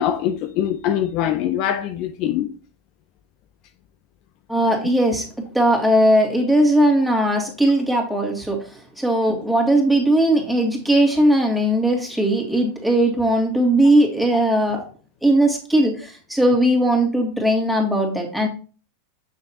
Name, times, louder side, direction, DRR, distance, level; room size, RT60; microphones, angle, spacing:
voice 1, 0.0-2.5 9.3-9.4, left 10 dB, 50° left, 0.5 m, -23 dB
voice 2, 4.5-14.8 15.2-18.5, right 1 dB, ahead, 2.3 m, -19 dB
7.1 x 6.2 x 2.9 m
hypercardioid pair, 115°, 0 cm